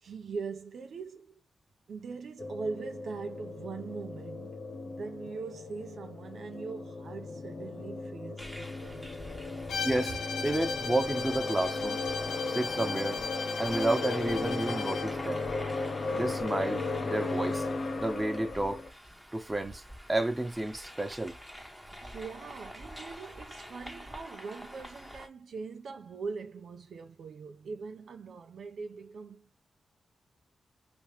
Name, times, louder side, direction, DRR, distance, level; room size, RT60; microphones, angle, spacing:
voice 1, 0.0-1.4 1.9-9.1 9.6-9.7 21.9-29.5, right 4 dB, 75° right, 0.6 m, -41 dB
sound 1, 2.4-18.9, left 3 dB, 55° left, 0.8 m, -36 dB
sound 2, 8.4-25.3, equal, ahead, 1.1 m, -46 dB
Bowed string instrument, 9.7-15.2, left 5 dB, 85° left, 0.7 m, -37 dB
voice 2, 9.8-10.2 10.4-12.0 12.5-13.2 13.6-15.4 16.1-17.7 17.9-18.9 19.3-19.8 20.1-21.4, right 1 dB, 15° right, 1.2 m, -31 dB
3.0 x 2.9 x 3.2 m
cardioid pair, 75°, 0 cm